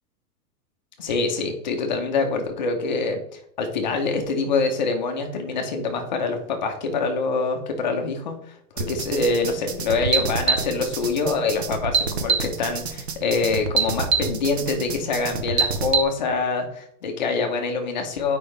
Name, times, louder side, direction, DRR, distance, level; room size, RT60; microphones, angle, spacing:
voice 1, 1.0-18.4, left 4 dB, 30° left, 3 dB, 0.8 m, -25 dB
sound 1, 8.8-16.0, right 5 dB, 45° right, 0.8 m, -25 dB
7.6 x 5.2 x 3.2 m, 0.72 s
hypercardioid pair, 180°, 47 cm